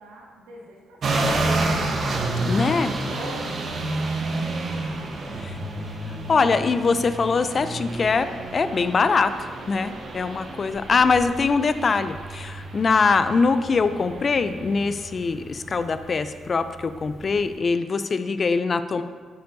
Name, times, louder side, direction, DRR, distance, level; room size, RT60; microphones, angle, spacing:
voice 1, 0.0-1.4 2.2-5.4, right 2 dB, 75° right, -2 dB, 1.7 m, -44 dB
sound 1, 1.0-17.5, right 2 dB, 55° right, 1.1 m, -30 dB
voice 2, 2.4-2.9 5.4-5.6 6.3-8.3 8.5-9.3 9.7-19.0, left 4 dB, 45° left, 11 dB, 0.5 m, -22 dB
12.0 x 7.7 x 2.7 m, 1.5 s
hypercardioid pair, 40°, 0 cm